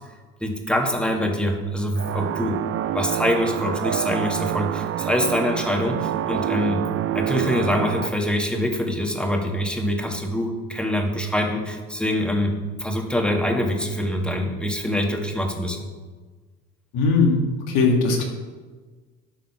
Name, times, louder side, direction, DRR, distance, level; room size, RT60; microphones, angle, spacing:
voice 1, 0.4-2.6 2.9-6.8 7.1-15.9, equal, 5° left, 2 dB, 1.8 m, -24 dB
sound 1, 2.0-8.1, right 11 dB, 40° right, 0.5 m, -27 dB
voice 2, 16.9-17.4 17.7-18.2, left 4 dB, 70° left, 1 dB, 2.2 m, -19 dB
12.0 x 4.1 x 5.7 m, 1.4 s
hypercardioid pair, 70°, 35 cm